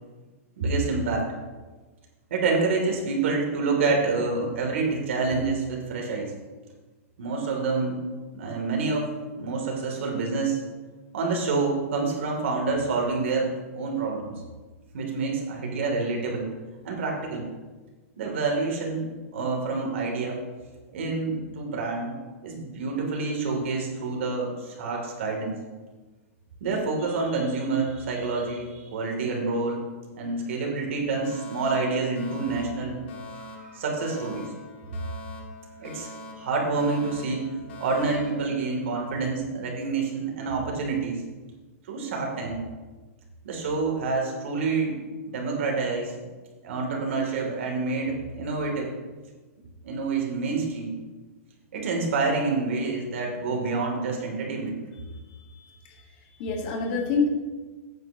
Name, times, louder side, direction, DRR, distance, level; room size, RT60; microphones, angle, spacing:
voice 1, 0.6-1.3 2.3-6.3 7.2-8.0 8.3-10.6 11.1-14.3 14.9-16.5 16.8-17.5 18.2-20.4 20.9-22.1 22.4-25.6 26.6-29.8 30.2-33.0 33.3-34.5 35.8-36.1 36.4-41.2 41.9-42.6 43.4-45.0 45.2-46.1 46.6-48.9 49.8-50.9 51.7-54.8, right 3 dB, 60° right, 0 dB, 2.9 m, -27 dB
Alarm, 31.2-39.3, left 2 dB, 50° left, 1.8 m, -44 dB
voice 2, 55.5-56.0 56.4-57.3, left 4 dB, 35° left, 1 dB, 1.6 m, -27 dB
14.5 x 9.4 x 3.0 m, 1.3 s
supercardioid pair, 175°, 8 cm